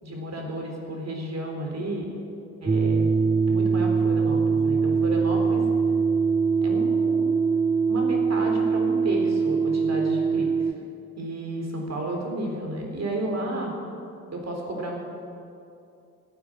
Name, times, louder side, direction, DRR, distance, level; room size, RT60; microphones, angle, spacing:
voice 1, 0.0-2.1 2.6-3.1 3.5-5.7 6.6-7.4 7.9-10.5 11.2-13.7 14.3-15.0, right 1 dB, 35° right, 1 dB, 3.9 m, -32 dB
sound 1, 2.7-10.7, right 5 dB, 10° right, 0.5 m, -22 dB
15.5 x 9.7 x 7.9 m, 2.6 s
figure-of-eight pair, 45°, 44 cm